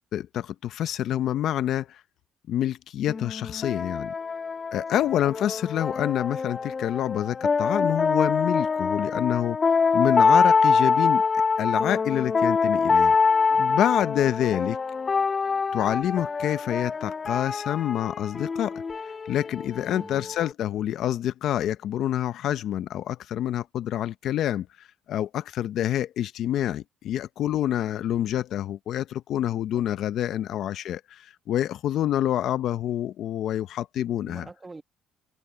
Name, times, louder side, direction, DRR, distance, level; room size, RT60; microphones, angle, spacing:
voice 1, 0.1-2.0 2.5-4.1 4.7-9.6 9.9-11.2 11.6-13.1 13.6-14.8 15.7-34.4, left 11 dB, 65° left, 0.7 m, -27 dB
sound 1, 3.1-20.5, left 5 dB, 30° left, 0.3 m, -25 dB
voice 2, 19.9-20.3 29.7-30.0 34.1-34.8, right 3 dB, 20° right, 1.2 m, -46 dB
cardioid pair, 95°, 0 cm